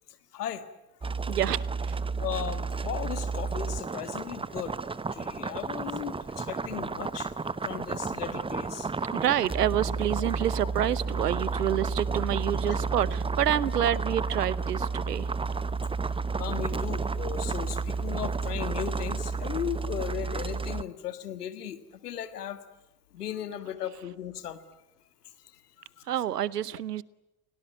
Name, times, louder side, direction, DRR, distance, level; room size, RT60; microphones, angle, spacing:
sound 1, 1.0-20.8, right 4 dB, 10° right, 0.8 m, -31 dB
voice 1, 1.2-2.0 9.1-15.3 26.0-27.0, right 11 dB, 80° right, 22 dB, 0.9 m, -28 dB
voice 2, 2.2-4.8 5.1-7.3 7.6-8.9 12.7-12.8 16.3-21.8 22.0-22.6 23.1-24.6, left 10 dB, 75° left, 11 dB, 1.8 m, -36 dB
29.5 x 18.0 x 8.9 m, 0.97 s
figure-of-eight pair, 60°, 47 cm